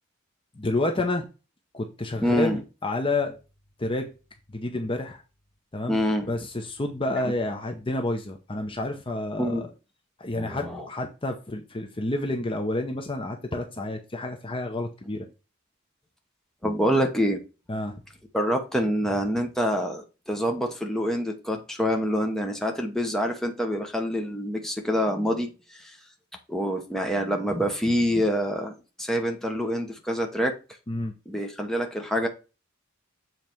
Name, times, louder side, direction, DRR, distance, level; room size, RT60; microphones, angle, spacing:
voice 1, 0.5-1.3 1.7-3.4 3.8-4.1 4.5-5.2 5.7-6.0 6.3-9.6 10.2-15.3 16.6-16.7 17.7-18.0 30.9-31.1, left 2 dB, 25° left, 4 dB, 0.8 m, -29 dB
voice 2, 2.2-2.6 5.9-6.3 7.1-7.2 9.4-9.7 10.4-10.9 16.6-17.4 18.3-25.5 25.8-25.9 26.5-30.5 31.3-32.3, equal, ahead, 2 dB, 1.0 m, -26 dB
7.5 x 4.0 x 4.5 m, 0.31 s
head